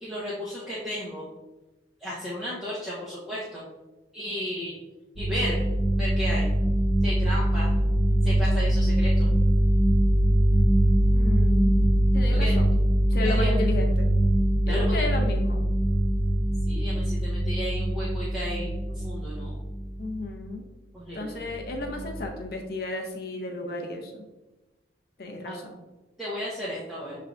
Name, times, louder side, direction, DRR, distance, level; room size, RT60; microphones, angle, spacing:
voice 1, 0.0-1.3 2.0-3.6 4.1-4.8 5.2-5.6 6.0-6.5 7.0-7.7 8.2-9.3 12.3-12.6 13.2-13.5 14.7-15.1 16.7-18.7 19.0-19.6 20.9-21.4 25.4-25.6 26.2-27.1, equal, ahead, -9 dB, 0.7 m, -33 dB
sound 1, 5.2-20.2 21.4-22.3, right 1 dB, 65° right, 0.9 m, -23 dB
voice 2, 11.1-12.8 13.1-14.1 14.7-15.6 20.0-20.7 21.1-24.2 25.2-25.8, left 2 dB, 55° left, 3 dB, 0.6 m, -33 dB
6.3 x 3.3 x 2.4 m, 1.1 s
head